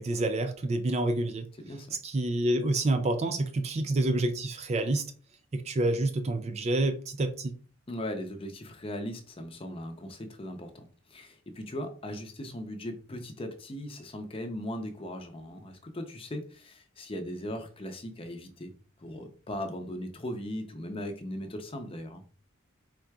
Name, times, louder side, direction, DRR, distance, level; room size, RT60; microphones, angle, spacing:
voice 1, 0.0-1.5 2.0-5.0 5.5-7.5, right 2 dB, 30° right, 0.3 m, -28 dB
voice 2, 1.6-2.0 7.9-18.7 19.0-22.2, left 1 dB, 25° left, 0.6 m, -38 dB
4.5 x 3.7 x 2.3 m
head